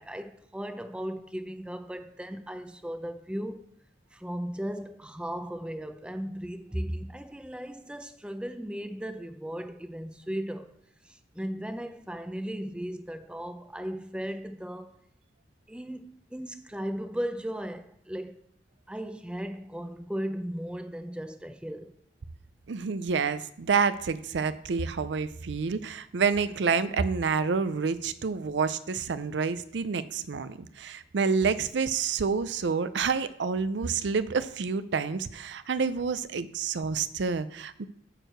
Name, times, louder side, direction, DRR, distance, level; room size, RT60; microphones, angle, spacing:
voice 1, 0.0-3.6 4.1-10.8 11.0-15.0 15.7-18.4 18.9-22.0, equal, 5° right, 0.5 m, -36 dB
voice 2, 22.7-37.9, right 5 dB, 80° right, 0.5 m, -28 dB
8.9 x 4.6 x 6.5 m
head